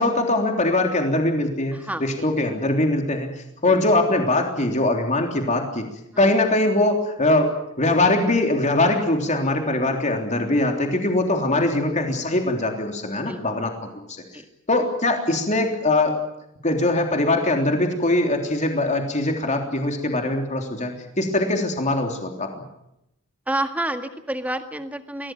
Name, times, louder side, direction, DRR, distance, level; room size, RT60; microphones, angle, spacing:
voice 1, 0.0-3.3 3.6-5.9 6.2-13.7 14.1-14.4 14.7-16.2 16.6-22.6, left 2 dB, 35° left, 3 dB, 3.4 m, -22 dB
voice 2, 1.7-2.3 3.7-3.8 6.1-6.3 11.5-11.7 13.3-13.4 14.3-14.4 23.5-25.3, right 1 dB, 5° right, 7 dB, 1.8 m, -29 dB
24.0 x 17.5 x 9.4 m, 0.83 s
head